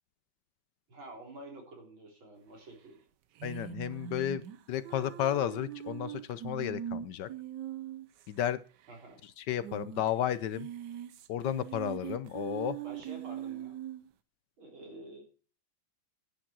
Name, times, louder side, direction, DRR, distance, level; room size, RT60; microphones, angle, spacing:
voice 1, 0.9-3.0 8.9-9.2 12.8-13.8 14.6-15.2, right 2 dB, 85° right, 1 dB, 4.5 m, -49 dB
voice 2, 3.4-7.3 8.3-8.6 9.4-10.7 11.3-12.8, left 10 dB, 70° left, 15 dB, 1.2 m, -33 dB
sound 1, 3.4-8.3 8.5-8.6 8.8-8.9 9.5-10.1 10.4-14.1, right 11 dB, 65° right, 1.2 m, -41 dB
10.0 x 8.8 x 6.1 m, 0.37 s
omnidirectional pair, 2.1 m